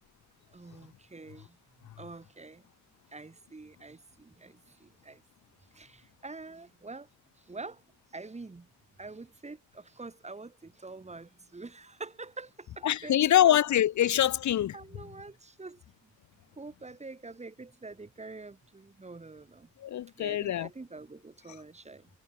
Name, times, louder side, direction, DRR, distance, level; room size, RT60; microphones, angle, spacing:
voice 1, 0.5-2.7 3.1-5.2 5.7-7.1 7.4-7.8 8.1-8.7 9.0-13.6 14.7-15.8 16.6-19.7 20.2-22.1, right 3 dB, 20° right, 7.0 m, -46 dB
voice 2, 12.8-14.7 19.8-20.7, left 11 dB, 70° left, 2.2 m, -24 dB
cardioid pair, 90°, 30 cm